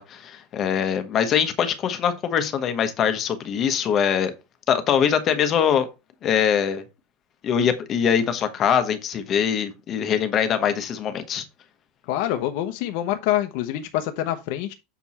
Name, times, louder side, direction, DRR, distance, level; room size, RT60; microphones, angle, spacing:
voice 1, 0.0-4.3 4.7-5.9 6.2-6.8 7.4-11.4, left 8 dB, 30° left, 1.1 m, -23 dB
voice 2, 12.1-14.7, left 12 dB, 55° left, 0.8 m, -26 dB
6.9 x 4.6 x 4.2 m
supercardioid pair, 160°, 0 cm